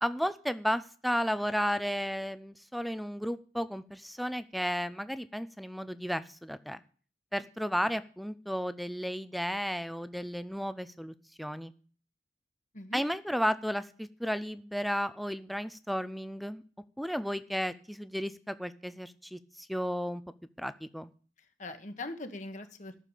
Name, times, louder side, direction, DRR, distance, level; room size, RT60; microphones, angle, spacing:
voice 1, 0.0-6.8 7.3-11.7 12.9-16.6 17.0-20.2 20.6-21.1, equal, ahead, 14 dB, 0.6 m, -33 dB
voice 2, 21.4-23.0, left 2 dB, 45° left, 7 dB, 1.5 m, -42 dB
13.5 x 6.9 x 8.4 m, 0.42 s
head